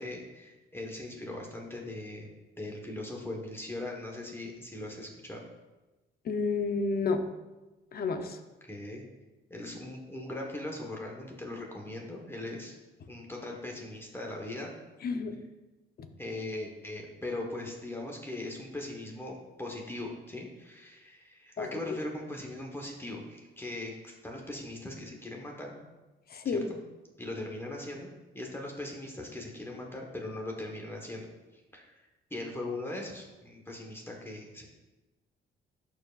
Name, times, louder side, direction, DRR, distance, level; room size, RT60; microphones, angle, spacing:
voice 1, 0.0-2.3 2.6-5.4 8.7-9.0 9.5-12.8 13.1-14.7 16.2-25.7 26.4-26.8 27.2-28.1 28.3-31.9 32.3-34.7, left 2 dB, 10° left, 0 dB, 1.2 m, -40 dB
voice 2, 6.2-7.2 7.9-8.4 15.0-15.4 21.6-21.7 26.3-26.7, left 4 dB, 50° left, 7 dB, 0.8 m, -30 dB
11.5 x 4.7 x 2.5 m, 1.1 s
cardioid pair, 90°, 20 cm